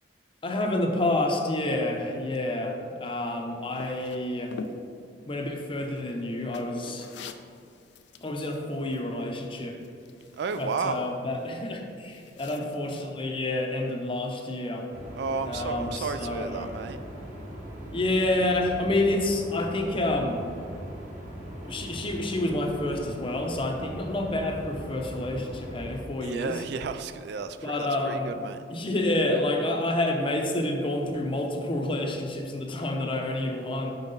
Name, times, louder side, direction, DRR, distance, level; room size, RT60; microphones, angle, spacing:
voice 1, 0.4-2.7 3.0-4.5 5.3-7.1 8.2-9.8 10.6-14.9 15.4-16.7 17.9-20.4 21.6-26.6 27.6-28.4 28.7-33.9, left 1 dB, 30° left, 2 dB, 0.7 m, -28 dB
sound 1, 3.7-13.0, left 4 dB, 70° left, 0.4 m, -47 dB
voice 2, 10.4-11.0 15.2-17.0 26.2-28.6, right 5 dB, 65° right, 10 dB, 0.3 m, -33 dB
sound 2, 14.9-26.0, equal, 45° right, 1.4 m, -40 dB
5.8 x 5.5 x 3.9 m, 2.3 s
head